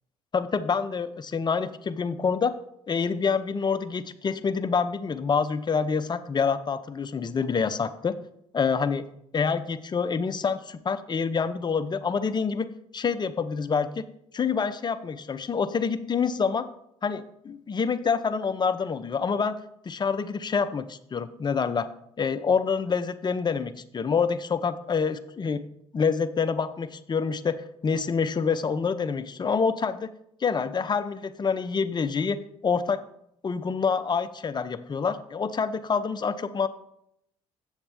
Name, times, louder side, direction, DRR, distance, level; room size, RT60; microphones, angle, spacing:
voice 1, 0.3-2.5 2.9-8.2 8.5-9.0 9.3-14.0 14.3-16.6 17.0-19.6 19.8-21.9 22.2-25.6 25.9-30.1 30.4-32.4 32.6-33.0 33.4-36.7, left 5 dB, 35° left, 10 dB, 0.7 m, -27 dB
8.0 x 7.1 x 3.4 m, 0.75 s
supercardioid pair, 65°, 14 cm